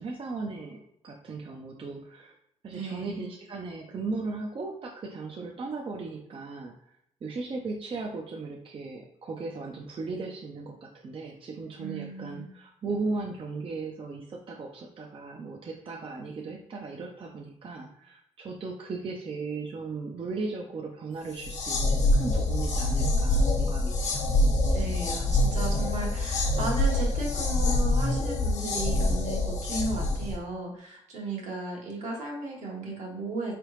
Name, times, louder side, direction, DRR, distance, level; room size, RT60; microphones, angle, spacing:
voice 1, 0.0-2.3 2.6-6.7 7.2-24.3, right 3 dB, 45° right, 0 dB, 0.6 m, -37 dB
voice 2, 2.7-3.3 11.8-12.5 24.7-33.5, right 2 dB, 75° right, -2 dB, 1.3 m, -35 dB
sound 1, 21.3-30.4, left 2 dB, 70° left, 0.9 m, -25 dB
3.6 x 3.3 x 3.1 m, 0.76 s
cardioid pair, 75°, 12 cm